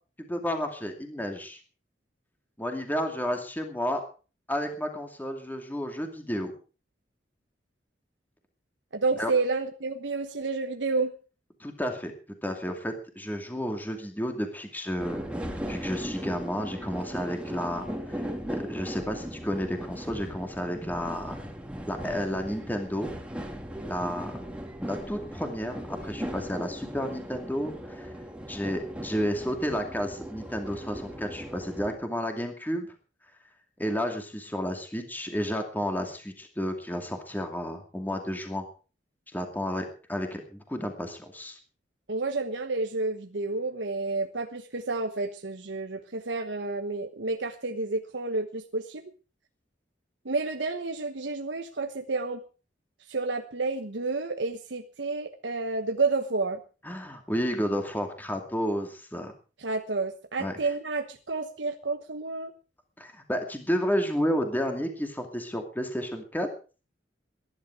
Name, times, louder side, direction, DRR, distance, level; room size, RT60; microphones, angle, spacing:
voice 1, 0.2-1.6 2.6-4.0 4.5-6.5 9.2-9.3 11.6-12.1 12.4-15.3 15.7-21.5 21.8-23.1 23.8-24.4 24.9-28.1 28.5-32.9 33.8-38.6 39.3-41.6 56.8-59.3 60.4-60.5 63.0-66.5, equal, 10° left, 4 dB, 2.5 m, -31 dB
voice 2, 8.9-11.1 42.1-49.0 50.2-52.4 53.1-56.6 59.6-62.5, right 3 dB, 90° right, 6 dB, 1.2 m, -30 dB
sound 1, 15.0-32.0, equal, 5° right, 2.4 m, -38 dB
20.5 x 11.0 x 4.8 m, 0.36 s
head